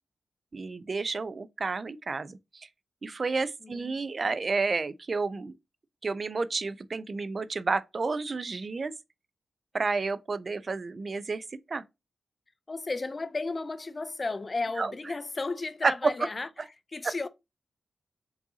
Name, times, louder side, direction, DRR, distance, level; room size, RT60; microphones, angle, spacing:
voice 1, 0.5-2.7 3.0-5.5 6.0-8.9 9.7-11.8 14.8-14.9 15.8-16.1 17.0-17.1, right 4 dB, 50° right, 0.3 m, -30 dB
voice 2, 3.6-4.0 12.7-16.5 16.9-17.3, left 3 dB, 40° left, 0.3 m, -34 dB
4.6 x 2.6 x 2.7 m
cardioid pair, 65°, 0 cm